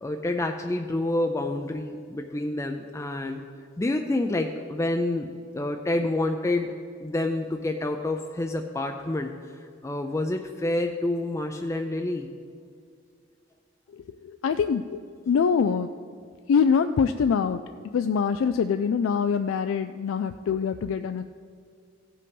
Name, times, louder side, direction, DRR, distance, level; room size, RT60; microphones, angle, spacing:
voice 1, 0.0-3.4 3.8-9.3 9.6-12.3, left 2 dB, 15° left, 4 dB, 0.4 m, -28 dB
voice 2, 13.9-15.0 15.3-15.9 16.5-17.6 17.9-21.2, left 6 dB, 85° left, 9 dB, 0.3 m, -24 dB
16.0 x 5.6 x 5.3 m, 2.2 s
head